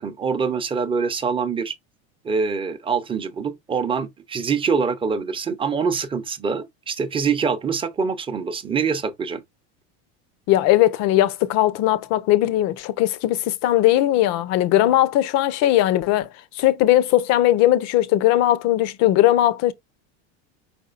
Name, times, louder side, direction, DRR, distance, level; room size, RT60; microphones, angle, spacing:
voice 1, 0.0-1.7 2.2-9.4, right 5 dB, 15° right, 0.7 m, -24 dB
voice 2, 10.5-16.3 16.6-19.7, left 14 dB, 50° left, 0.7 m, -19 dB
4.7 x 4.3 x 2.4 m
supercardioid pair, 130°, 35 cm